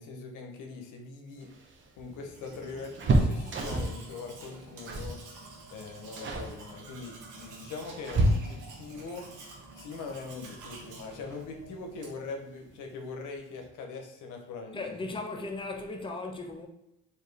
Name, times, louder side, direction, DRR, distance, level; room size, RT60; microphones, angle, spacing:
voice 1, 0.0-1.5 2.0-5.2 5.7-9.2 9.8-15.1, left 4 dB, 85° left, 0.8 m, -42 dB
sound 1, 1.4-4.1 4.8-5.2 5.5-5.7 6.2-6.5 7.4-8.8 10.6-10.7 11.1-11.2 12.3-12.8 13.1-13.2 13.5-13.7, right 1 dB, 40° right, 0.7 m, -29 dB
Domestic sounds home sounds, 2.2-12.3, right 3 dB, 85° right, 1.0 m, -48 dB
voice 2, 14.7-16.7, left 3 dB, 15° left, 0.6 m, -37 dB
4.4 x 2.6 x 3.1 m
cardioid pair, 90°, 30 cm